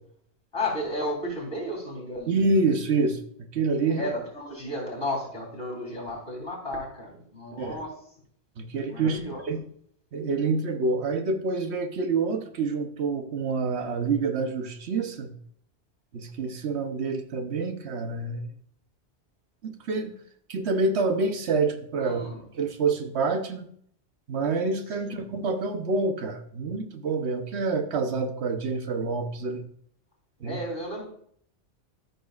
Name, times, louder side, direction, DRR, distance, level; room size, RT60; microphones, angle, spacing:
voice 1, 0.5-2.3 3.9-7.9 8.9-9.5 22.0-22.4 25.1-25.2 30.4-31.1, left 1 dB, 55° left, -2 dB, 3.4 m, -33 dB
voice 2, 2.3-4.1 7.6-7.8 8.6-9.6 10.1-15.3 16.1-18.5 19.6-20.1 20.5-22.2 22.6-23.7 24.3-29.6 30.4-30.6, right 3 dB, 75° right, 6 dB, 1.1 m, -27 dB
13.5 x 6.3 x 2.4 m, 0.63 s
omnidirectional pair, 1.1 m